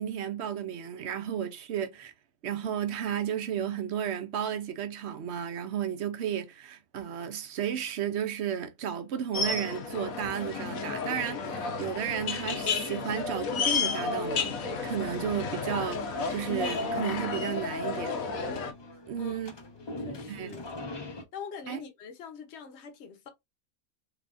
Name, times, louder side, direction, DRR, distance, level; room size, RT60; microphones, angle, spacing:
voice 1, 0.0-2.1 2.4-14.6 14.8-18.2 19.1-19.5 20.3-20.6 21.7-21.8, right 9 dB, 60° right, 0.8 m, -33 dB
sound 1, 9.3-18.7, left 4 dB, 85° left, 1.3 m, -32 dB
sound 2, 13.6-21.2, left 2 dB, 35° left, 0.4 m, -45 dB
voice 2, 19.7-20.6 21.3-23.3, left 6 dB, 55° left, 1.1 m, -44 dB
3.6 x 3.4 x 2.4 m
omnidirectional pair, 1.4 m